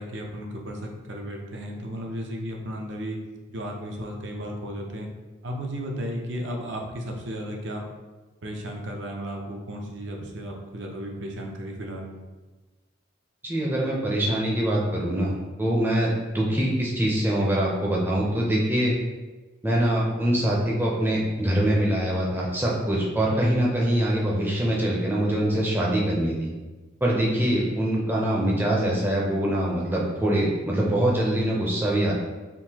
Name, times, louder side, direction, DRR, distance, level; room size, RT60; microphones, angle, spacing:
voice 1, 0.0-3.2 3.5-5.1 5.4-7.8 8.4-12.2, equal, 60° right, 1 dB, 0.5 m, -34 dB
voice 2, 13.4-18.9 19.6-26.5 27.0-32.1, right 1 dB, 10° right, -4 dB, 0.5 m, -24 dB
3.7 x 2.6 x 2.8 m, 1.2 s
head